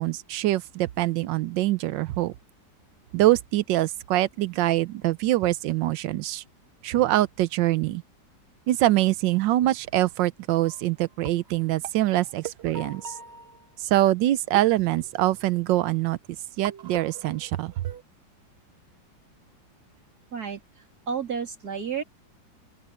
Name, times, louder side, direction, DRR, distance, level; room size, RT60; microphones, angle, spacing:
voice 1, 0.0-2.3 3.1-6.4 6.8-8.0 8.7-13.1 13.8-16.2 16.6-17.7, right 15 dB, 85° right, 1.3 m, -24 dB
sound 1, 10.6-10.9 11.2-14.0 14.5-15.7 16.6-18.0, right 6 dB, 40° right, 1.4 m, -41 dB
voice 2, 21.1-22.0, right 6 dB, 55° right, 3.6 m, -31 dB
open air
omnidirectional pair, 2.0 m